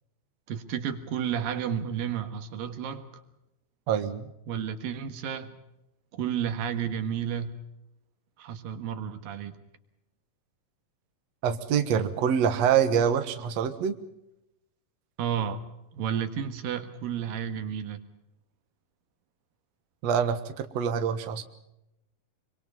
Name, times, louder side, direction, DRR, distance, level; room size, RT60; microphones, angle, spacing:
voice 1, 0.5-3.1 4.5-5.5 6.1-7.6 8.4-9.5 15.2-15.6 15.9-18.0, right 8 dB, 85° right, 9 dB, 3.3 m, -31 dB
voice 2, 3.9-4.3 11.4-13.9 20.0-21.4, right 8 dB, 55° right, 8 dB, 2.4 m, -25 dB
25.0 x 25.0 x 5.5 m, 0.86 s
omnidirectional pair, 3.9 m